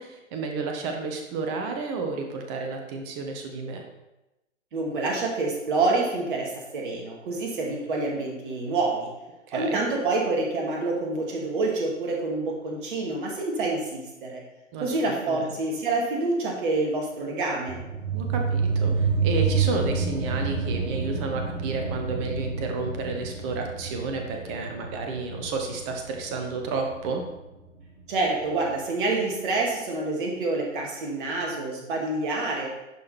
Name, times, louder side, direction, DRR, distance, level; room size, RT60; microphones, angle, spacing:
voice 1, 0.0-3.8 9.5-9.8 14.7-15.5 18.1-27.2, right 4 dB, 20° right, 3 dB, 1.1 m, -31 dB
voice 2, 4.7-9.1 9.5-14.4 14.8-17.8 28.1-32.7, right 3 dB, 40° right, -1 dB, 2.2 m, -27 dB
sound 1, 17.7-28.8, right 4 dB, 80° right, 1.7 m, -29 dB
10.5 x 5.0 x 4.3 m, 0.97 s
figure-of-eight pair, 125°, 38 cm